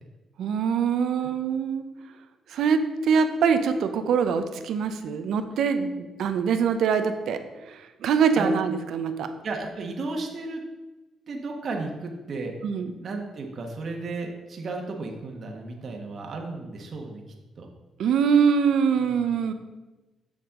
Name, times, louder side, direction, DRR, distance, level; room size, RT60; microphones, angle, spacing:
voice 1, 0.4-1.8 2.5-7.4 7.7-9.3 12.6-12.9 18.0-19.5, right 6 dB, 75° right, 8 dB, 0.7 m, -23 dB
voice 2, 9.4-10.6 11.3-12.5 13.0-17.2 17.6-17.7 19.0-19.2, right 3 dB, 50° right, 1 dB, 1.3 m, -34 dB
7.2 x 7.1 x 3.7 m, 1.1 s
cardioid pair, 90°, 0 cm